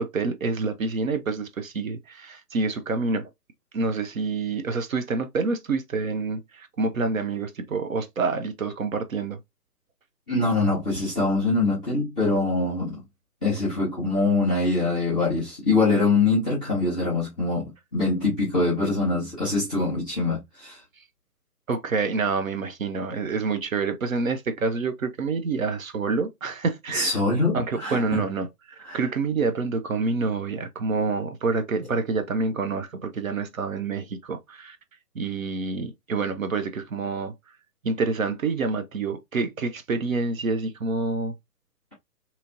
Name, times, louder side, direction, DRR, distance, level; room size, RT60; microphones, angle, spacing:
voice 1, 0.0-3.3 3.7-9.4 21.7-27.1 27.5-34.8 35.1-37.3 37.8-41.3, right 4 dB, 60° right, 0.6 m, -27 dB
voice 2, 10.3-13.0 13.4-20.8 26.9-28.2 28.8-29.0, left 3 dB, 5° right, 0.5 m, -24 dB
2.8 x 2.7 x 2.4 m
figure-of-eight pair, 130°, 47 cm